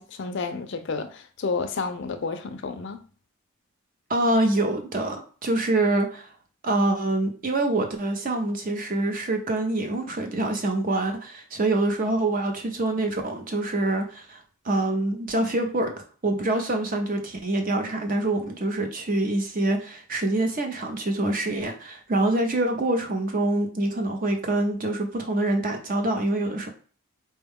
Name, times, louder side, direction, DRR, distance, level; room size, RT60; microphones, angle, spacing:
voice 1, 0.0-3.0, left 4 dB, 55° left, 0.4 m, -31 dB
voice 2, 4.1-6.3 6.6-15.9 16.2-26.7, right 2 dB, 40° right, 0.6 m, -25 dB
4.3 x 2.2 x 3.5 m
head